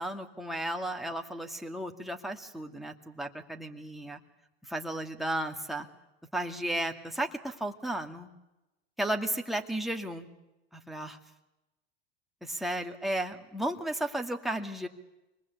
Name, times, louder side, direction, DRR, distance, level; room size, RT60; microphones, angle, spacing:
voice 1, 0.0-4.2 4.7-5.9 6.3-8.3 9.0-10.3 10.7-11.2 12.4-14.9, right 1 dB, ahead, 3 dB, 2.3 m, -34 dB
25.0 x 20.0 x 8.3 m, 0.97 s
hypercardioid pair, 90°, 33 cm